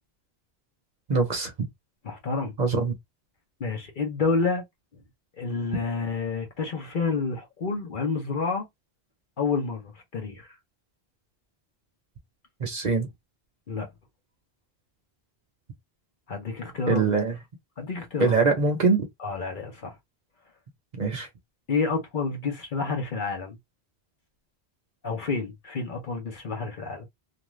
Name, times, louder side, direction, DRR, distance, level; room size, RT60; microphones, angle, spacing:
voice 1, 1.1-1.5 2.6-2.9 12.6-13.1 16.9-17.4 18.2-19.1 21.0-21.3, right 4 dB, 45° right, 0.8 m, -23 dB
voice 2, 2.0-2.5 3.6-4.6 5.4-8.7 9.4-10.5 13.7-13.9 16.3-17.0 17.8-18.4 19.2-20.0 21.7-23.6 25.0-27.1, left 4 dB, 55° left, 0.9 m, -29 dB
2.5 x 2.3 x 3.0 m
omnidirectional pair, 1.1 m